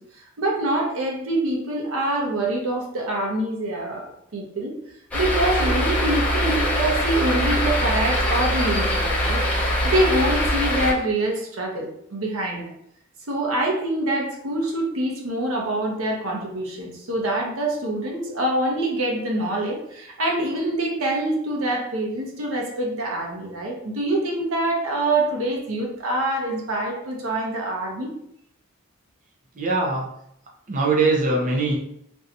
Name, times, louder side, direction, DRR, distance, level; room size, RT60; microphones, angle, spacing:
voice 1, 0.4-4.1 4.3-4.7 5.1-12.7 13.3-28.1, right 1 dB, 85° right, 0 dB, 0.8 m, -25 dB
sound 1, 5.1-10.9, equal, 5° left, 0.6 m, -22 dB
voice 2, 29.6-30.0 30.7-31.8, right 3 dB, 40° right, -2 dB, 0.5 m, -21 dB
2.6 x 2.3 x 3.9 m, 0.74 s
head